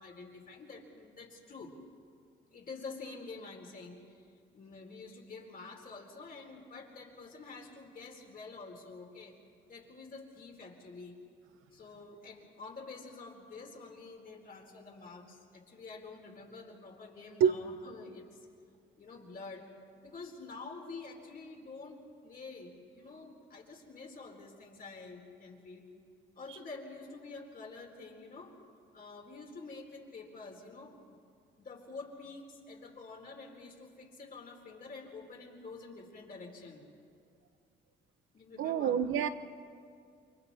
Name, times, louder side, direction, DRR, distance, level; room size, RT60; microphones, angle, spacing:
voice 1, 0.0-1.7 2.5-4.3 4.5-9.4 9.7-11.2 11.7-18.5 19.0-19.7 20.0-25.9 26.4-28.6 28.9-31.2 31.6-36.8 38.3-39.0, left 3 dB, 45° left, 1 dB, 4.1 m, -48 dB
voice 2, 38.6-39.3, right 8 dB, 85° right, 11 dB, 1.0 m, -27 dB
29.0 x 25.0 x 4.3 m, 2.3 s
cardioid pair, 90°, 20 cm